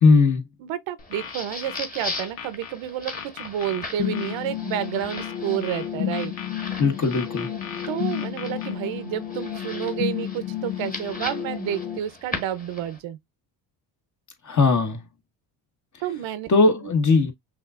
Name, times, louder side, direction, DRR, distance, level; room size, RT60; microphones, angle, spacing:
voice 1, 0.0-0.4 6.8-7.5 14.4-15.0 16.5-17.3, left 4 dB, 35° left, 1.5 m, -18 dB
voice 2, 0.6-6.3 7.9-13.2 16.0-16.5, right 11 dB, 70° right, 0.9 m, -30 dB
sound 1, 1.0-2.7 3.1-4.4 5.1-6.7 7.1-8.7, left 8 dB, 90° left, 1.2 m, -38 dB
sound 2, 1.0-13.0, left 2 dB, 15° left, 1.5 m, -39 dB
sound 3, 4.0-12.0, left 11 dB, 70° left, 1.1 m, -31 dB
5.8 x 2.6 x 2.4 m
supercardioid pair, 85°, 48 cm